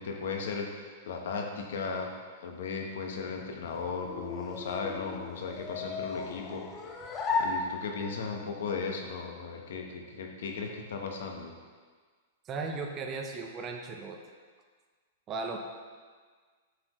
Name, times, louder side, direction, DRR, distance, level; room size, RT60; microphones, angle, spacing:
voice 1, 0.0-2.1 2.4-6.6 7.4-11.5, left 5 dB, 75° left, 2 dB, 0.9 m, -36 dB
sound 1, 3.4-8.3, left 4 dB, 20° left, 0.6 m, -36 dB
voice 2, 12.4-14.2 15.3-15.6, right 4 dB, 25° right, 2 dB, 0.6 m, -36 dB
7.7 x 4.3 x 3.0 m, 1.6 s
supercardioid pair, 160°, 0 cm